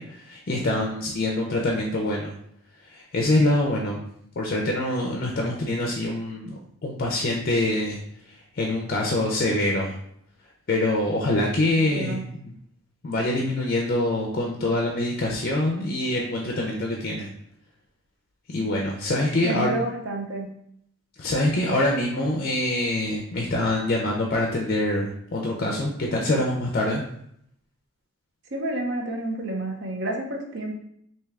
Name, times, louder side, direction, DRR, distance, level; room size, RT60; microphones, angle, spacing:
voice 1, 0.0-2.3 2.9-4.0 4.4-8.0 8.5-9.9 10.7-12.5 13.0-17.3 18.5-19.8 21.2-27.0, left 1 dB, 45° left, -1 dB, 0.4 m, -25 dB
voice 2, 11.8-12.2 19.4-20.5 28.5-30.7, right 2 dB, 50° right, 2 dB, 0.5 m, -29 dB
3.5 x 2.7 x 3.2 m, 0.71 s
head